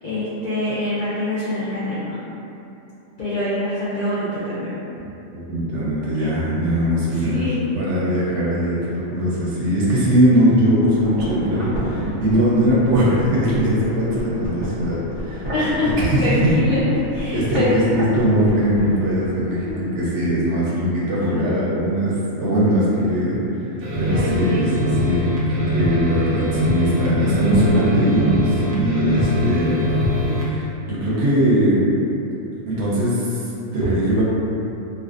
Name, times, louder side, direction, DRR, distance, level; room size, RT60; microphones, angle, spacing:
voice 1, 0.0-2.2 3.2-4.7 6.2-6.3 7.1-7.6 15.5-15.9 16.2-16.8 17.1-17.8 19.6-19.8 21.3-21.6 24.1-24.7 30.9-31.3, left 1 dB, 60° left, -13 dB, 0.5 m, -25 dB
voice 2, 5.3-7.4 7.8-15.5 16.0-16.5 17.3-23.6 23.9-29.8 30.5-31.9 32.7-34.2, equal, 70° right, -7 dB, 0.8 m, -20 dB
sound 1, 10.8-19.8 20.1-20.2, right 1 dB, 40° right, 0.4 m, -32 dB
sound 2, 23.8-30.5, left 1 dB, 90° right, 1.0 m, -22 dB
2.5 x 2.3 x 2.4 m, 2.9 s
omnidirectional pair, 1.4 m